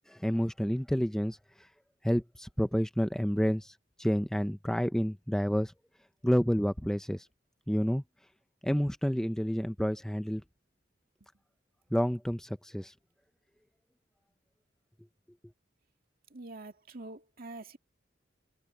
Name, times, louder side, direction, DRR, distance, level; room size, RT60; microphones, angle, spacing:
voice 1, 0.1-1.4 2.0-5.7 6.2-7.3 7.7-8.0 8.6-10.4 11.9-12.9, equal, 5° left, 0.5 m, -29 dB
voice 2, 16.3-17.8, right 2 dB, 50° right, 2.3 m, -45 dB
head